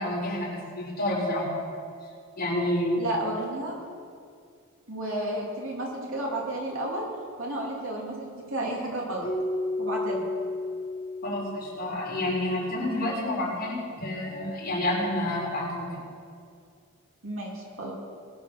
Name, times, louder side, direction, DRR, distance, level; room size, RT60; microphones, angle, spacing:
voice 1, 0.0-1.5 2.4-3.0 11.2-15.9, left 1 dB, 45° left, -5 dB, 4.4 m, -29 dB
voice 2, 3.0-3.8 4.9-7.0 7.4-9.3 9.8-10.3 17.2-17.9, right 1 dB, 75° right, -2 dB, 3.0 m, -32 dB
Keyboard (musical), 9.2-12.1, left 2 dB, 25° left, 1.5 m, -32 dB
21.0 x 7.0 x 6.1 m, 2.2 s
head